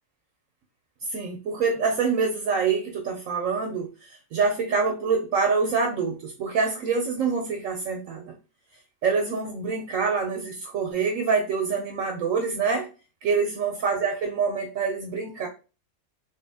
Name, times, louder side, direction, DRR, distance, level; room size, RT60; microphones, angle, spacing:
voice 1, 1.1-8.2 9.0-12.9 13.2-15.5, right 5 dB, 70° right, 3 dB, 0.9 m, -26 dB
3.1 x 2.6 x 3.4 m, 0.32 s
omnidirectional pair, 1.6 m